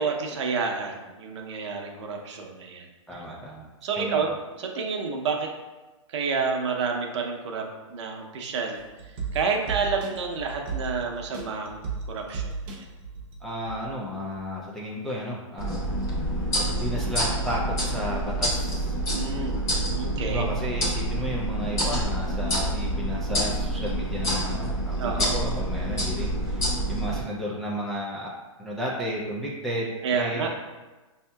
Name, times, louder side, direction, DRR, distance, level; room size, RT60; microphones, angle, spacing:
voice 1, 0.0-2.9 3.1-3.2 3.8-4.3 4.6-5.5 6.1-7.6 7.9-8.8 9.3-12.8 19.1-20.4 25.0-25.5 30.0-30.6, right 5 dB, 60° right, 2 dB, 0.7 m, -29 dB
voice 2, 3.1-4.4 13.4-15.9 16.7-19.0 20.2-28.3 28.6-30.6, equal, ahead, -6 dB, 0.4 m, -33 dB
sound 1, 8.8-13.9 14.3-14.4, right 4 dB, 30° right, 0.7 m, -36 dB
sound 2, 15.6-27.2, right 1 dB, 20° left, 1.0 m, -27 dB
5.5 x 2.8 x 2.2 m, 1.2 s
hypercardioid pair, 145°, 17 cm